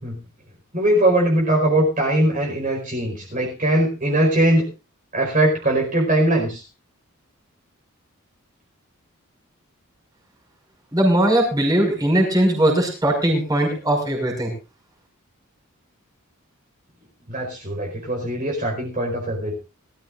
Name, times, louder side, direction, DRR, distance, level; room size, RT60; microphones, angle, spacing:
voice 1, 0.7-4.7 5.1-6.6 17.3-19.5, right 1 dB, 35° right, -1 dB, 4.9 m, -20 dB
voice 2, 10.9-14.5, right 1 dB, 15° right, 0 dB, 5.8 m, -19 dB
21.5 x 14.0 x 2.5 m, 0.30 s
head